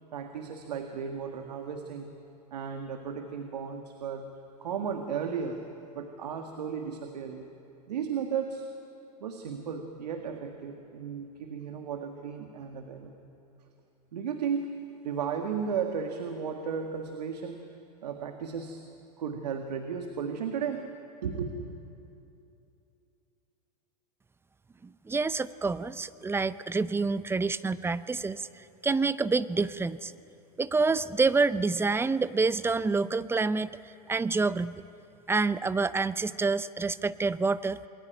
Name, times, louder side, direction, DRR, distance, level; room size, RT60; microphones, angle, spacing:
voice 1, 0.1-2.1 2.5-4.3 4.6-5.7 5.9-7.5 7.9-8.7 9.2-13.3 14.1-14.8 15.0-17.7 18.0-18.8 19.2-20.9 21.2-21.7, right 6 dB, 80° right, 5 dB, 1.8 m, -34 dB
voice 2, 25.1-30.1 30.6-33.7 34.1-34.8 35.3-37.8, right 4 dB, 10° right, 15 dB, 0.6 m, -27 dB
28.0 x 21.0 x 9.3 m, 2.8 s
hypercardioid pair, 100°, 21 cm